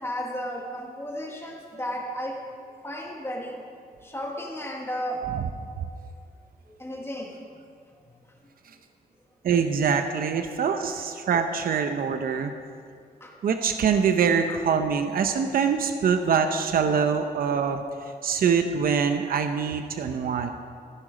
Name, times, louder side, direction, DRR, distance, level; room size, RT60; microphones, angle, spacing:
voice 1, 0.0-2.4 2.8-3.6 4.0-5.3 6.7-7.4 13.2-13.3 14.5-14.6, equal, 15° left, -1 dB, 1.5 m, -34 dB
voice 2, 5.2-5.5 9.4-12.5 13.4-17.8 18.2-20.5, right 6 dB, 70° right, 7 dB, 0.8 m, -24 dB
15.0 x 12.5 x 5.0 m, 2.3 s
wide cardioid pair, 155°, 16 cm